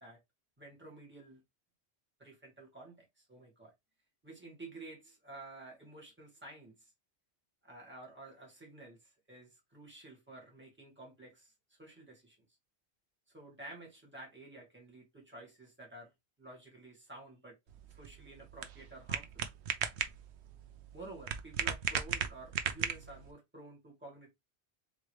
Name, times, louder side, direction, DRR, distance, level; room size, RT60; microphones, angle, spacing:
voice 1, 0.6-1.4 2.2-3.7 4.2-6.9 7.6-12.4 13.3-16.1 16.4-17.6 17.9-19.5 20.9-24.3, right 2 dB, 10° right, 1.9 m, -51 dB
sound 1, 17.7-23.3, right 8 dB, 80° right, 0.9 m, -37 dB
3.6 x 3.1 x 3.1 m
omnidirectional pair, 1.1 m